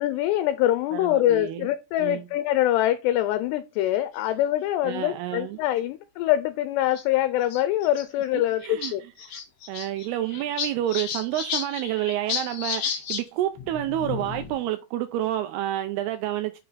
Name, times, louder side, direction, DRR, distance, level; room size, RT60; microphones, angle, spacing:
voice 1, 0.0-9.0, left 13 dB, 85° left, 2.6 m, -24 dB
voice 2, 0.9-1.7 2.0-2.2 4.8-5.6 8.3-8.9 9.3-9.4 9.7-16.6, right 13 dB, 85° right, 2.3 m, -29 dB
sound 1, 4.2-4.5 5.4-5.5 5.8-5.9 7.0-7.1 7.4-8.0 8.4-8.5 8.6-8.9 9.2-13.2 13.6-14.6, left 7 dB, 65° left, 1.7 m, -32 dB
6.4 x 4.0 x 3.9 m
omnidirectional pair, 4.9 m